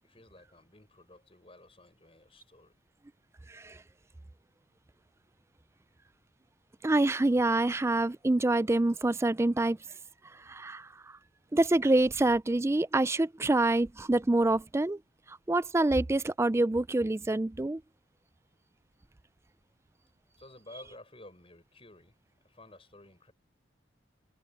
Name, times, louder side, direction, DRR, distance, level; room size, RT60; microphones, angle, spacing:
voice 1, 0.0-2.7 20.4-22.2 22.4-23.3, left 2 dB, 30° left, 6.6 m, -53 dB
voice 2, 3.5-3.8 6.8-9.8 10.3-11.2 11.5-15.0 15.3-17.8, right 2 dB, 15° right, 0.3 m, -26 dB
head